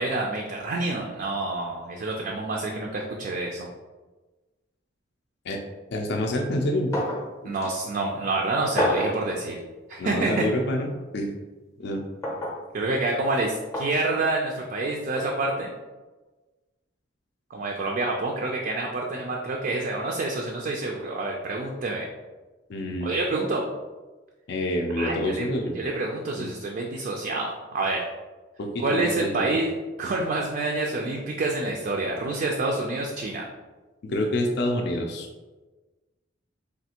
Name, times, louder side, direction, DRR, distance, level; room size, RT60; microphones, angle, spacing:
voice 1, 0.0-3.7 7.4-9.6 9.9-10.5 12.7-15.7 17.5-22.1 23.0-23.6 25.0-25.4 25.8-28.1 28.8-29.7 30.0-33.4, right 2 dB, 50° right, 0 dB, 0.3 m, -27 dB
voice 2, 5.9-6.9 10.0-10.9 11.1-11.4 11.8-12.0 22.7-23.4 24.5-25.8 26.4-26.5 28.6-29.6 34.0-35.3, left 1 dB, 60° left, 2 dB, 0.4 m, -27 dB
sound 1, 6.9-7.3 7.6-7.7 8.8-9.2 10.3-10.5 12.2-12.6 13.7-13.9 15.2-15.3, left 1 dB, 15° left, 0.6 m, -27 dB
3.3 x 2.4 x 2.8 m, 1.2 s
head